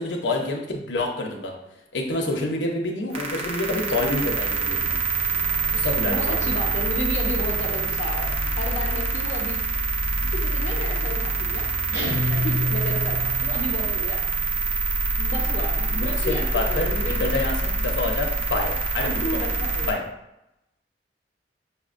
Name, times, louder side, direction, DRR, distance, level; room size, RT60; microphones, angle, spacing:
voice 1, 0.0-1.5 1.9-4.9 5.7-6.4 15.9-19.2 19.8-20.0, left 2 dB, 90° left, 1 dB, 0.6 m, -27 dB
sound 1, 3.1-19.9, right 3 dB, 35° right, 0.7 m, -25 dB
voice 2, 6.0-8.3 8.6-9.6 10.3-14.2 15.2-17.2 19.0-20.0, left 1 dB, 45° left, -1 dB, 0.6 m, -32 dB
sound 2, 11.9-13.6, left 2 dB, 80° right, 1.0 m, -27 dB
5.7 x 2.1 x 2.4 m, 0.86 s
head